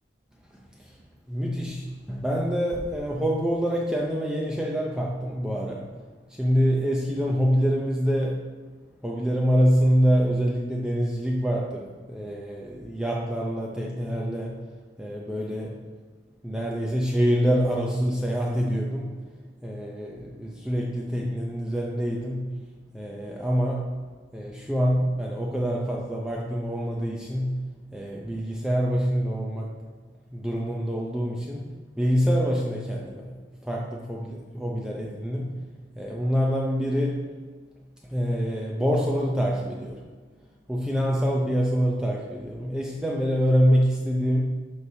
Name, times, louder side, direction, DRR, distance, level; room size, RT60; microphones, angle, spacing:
voice 1, 1.3-5.9 6.4-8.4 9.0-14.6 15.0-15.8 16.4-19.1 19.6-22.5 22.9-23.9 24.3-27.6 27.9-29.7 30.3-31.6 32.0-33.4 33.6-35.5 36.0-37.2 38.1-40.0 40.7-44.5, equal, 5° right, -2 dB, 0.6 m, -25 dB
12.0 x 4.8 x 2.7 m, 1.4 s
head